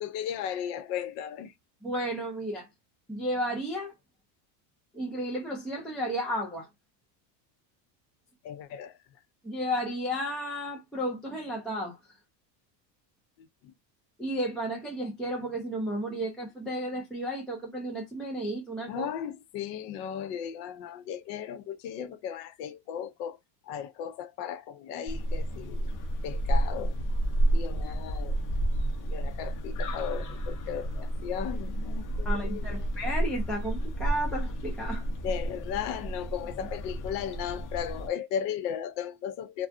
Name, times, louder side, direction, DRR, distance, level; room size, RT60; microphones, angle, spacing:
voice 1, 0.0-1.5 8.4-9.0 13.4-13.5 18.9-23.4 23.7-25.9 26.2-26.9 27.5-28.4 29.1-32.9 35.2-39.7, left 9 dB, 70° left, 0.7 m, -36 dB
voice 2, 1.8-2.7 3.1-3.9 4.9-6.7 9.4-12.2 14.2-19.1 32.2-35.1, equal, ahead, 0.3 m, -33 dB
sound 1, 25.1-38.1, right 1 dB, 40° left, 0.7 m, -31 dB
2.4 x 2.3 x 2.4 m
supercardioid pair, 120°, 50 cm